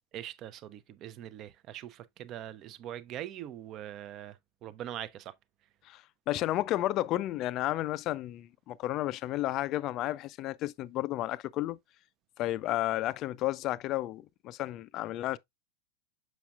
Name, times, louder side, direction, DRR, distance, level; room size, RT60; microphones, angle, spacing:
voice 1, 0.1-5.3, right 11 dB, 35° right, 0.6 m, -42 dB
voice 2, 5.9-11.8 12.4-15.4, left 15 dB, 35° left, 0.4 m, -32 dB
6.9 x 6.1 x 2.3 m
figure-of-eight pair, 90°, 0 cm